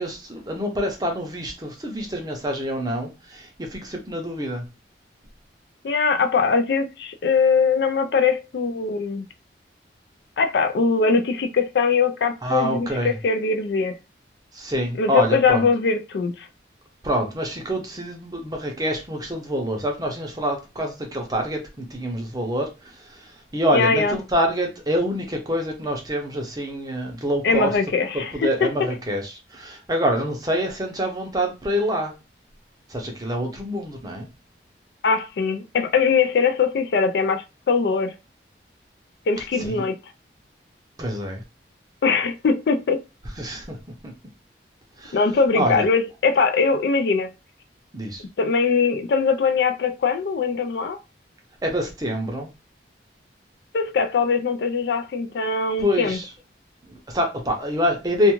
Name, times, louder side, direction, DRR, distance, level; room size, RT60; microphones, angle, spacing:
voice 1, 0.0-4.7 12.4-13.1 14.5-15.7 17.0-27.7 28.1-32.1 32.9-34.3 39.6-39.9 41.0-41.4 43.4-43.8 44.0-44.1 45.0-45.2 45.5-45.8 47.9-48.2 51.6-52.5 55.8-56.3 56.8-58.3, equal, 20° right, 0.6 m, -26 dB
voice 2, 5.8-9.3 10.4-14.0 15.0-16.5 23.7-24.2 27.4-28.3 28.6-28.7 35.0-38.1 39.3-40.0 42.0-43.0 45.1-47.3 48.4-51.0 53.7-56.2, left 5 dB, 65° left, 0.3 m, -21 dB
2.4 x 2.3 x 2.9 m
head